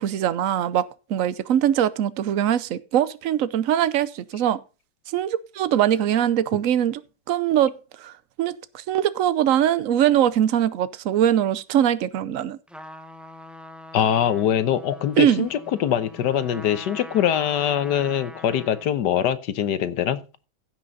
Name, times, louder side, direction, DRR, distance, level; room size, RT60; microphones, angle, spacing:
voice 1, 0.0-4.6 5.1-7.0 7.3-7.7 8.0-8.1 8.4-8.6 8.9-12.6 15.2-15.5, right 10 dB, 60° right, 1.0 m, -22 dB
Trumpet, 12.7-19.0, left 1 dB, ahead, 0.5 m, -43 dB
voice 2, 13.9-20.2, left 10 dB, 75° left, 1.4 m, -23 dB
15.5 x 6.1 x 3.9 m
omnidirectional pair, 1.9 m